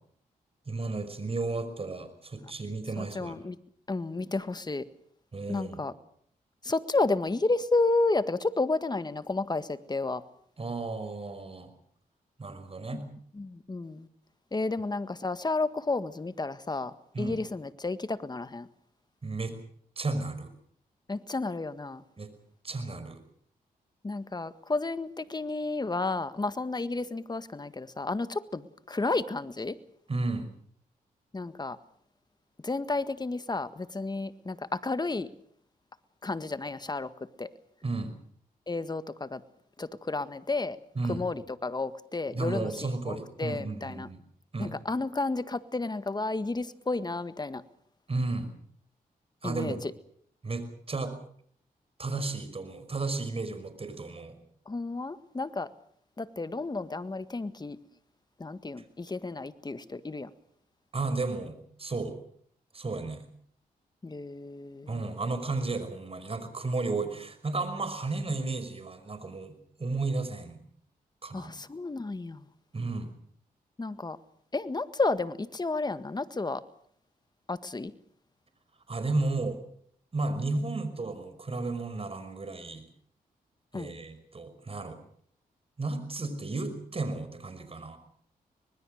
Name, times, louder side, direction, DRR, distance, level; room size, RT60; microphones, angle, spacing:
voice 1, 0.7-3.4 5.3-5.8 10.6-11.7 12.4-13.0 17.1-17.4 19.2-19.6 20.0-20.5 22.2-22.3 22.6-23.2 30.1-30.5 37.8-38.1 41.0-41.3 42.3-44.2 44.5-44.8 48.1-48.5 49.4-49.8 50.4-51.2 52.0-54.4 60.9-62.2 62.7-63.3 64.9-70.6 71.2-71.5 72.7-73.1 78.9-79.6 80.1-82.9 83.7-85.0 85.8-88.0, right 3 dB, 40° right, 10 dB, 5.4 m, -33 dB
voice 2, 3.0-3.6 3.9-4.8 5.5-5.9 6.6-10.2 12.9-13.0 13.4-14.1 14.5-18.7 21.1-22.0 24.0-29.8 31.3-31.8 32.6-35.3 36.2-37.1 37.4-37.5 38.7-39.4 39.8-40.8 41.1-44.1 44.6-47.6 49.4-49.8 54.7-55.7 56.2-57.8 58.4-60.3 64.0-65.0 71.3-72.4 73.8-74.2 74.5-76.6 77.5-77.9 83.7-83.9, left 3 dB, 25° left, 12 dB, 1.7 m, -31 dB
25.0 x 20.5 x 6.6 m, 0.63 s
cardioid pair, 65°, 16 cm